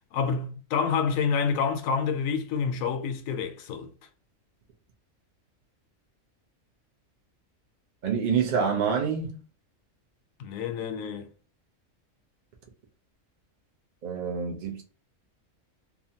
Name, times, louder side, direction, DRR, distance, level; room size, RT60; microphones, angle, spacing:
voice 1, 0.1-3.9 10.4-11.3, left 6 dB, 80° left, 1.0 m, -28 dB
voice 2, 8.0-9.4 14.0-14.8, right 6 dB, 60° right, 0.5 m, -27 dB
2.8 x 2.2 x 2.7 m
omnidirectional pair, 1.4 m